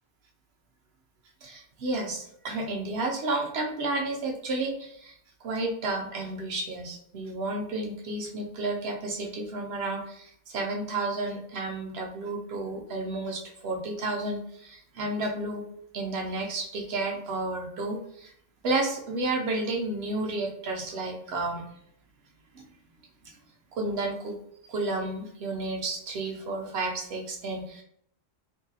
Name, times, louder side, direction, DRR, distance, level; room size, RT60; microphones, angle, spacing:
voice 1, 1.4-5.2 5.4-15.6 15.9-18.3 18.6-21.6 22.5-22.6 23.3-23.4 23.7-24.4 24.6-27.8, right 2 dB, 65° right, 2 dB, 0.8 m, -31 dB
2.8 x 2.7 x 2.7 m, 0.68 s
omnidirectional pair, 1.3 m